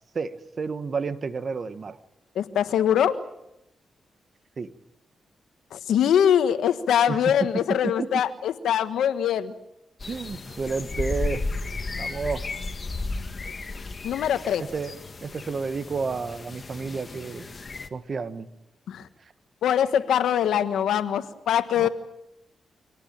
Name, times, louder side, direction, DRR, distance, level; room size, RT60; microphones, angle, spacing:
voice 1, 0.1-2.0 4.6-4.7 7.1-7.3 7.8-8.1 10.1-11.4 12.0-12.4 14.6-17.5 17.9-18.5 21.8-21.9, right 4 dB, 50° right, 12 dB, 1.5 m, -31 dB
voice 2, 2.3-3.2 5.7-9.5 14.0-14.6 18.9-19.1 19.6-21.9, left 9 dB, 90° left, 11 dB, 1.4 m, -23 dB
sound 1, 10.0-17.9, left 3 dB, 40° left, 2.0 m, -34 dB
25.5 x 18.0 x 8.9 m, 0.85 s
cardioid pair, 75°, 0 cm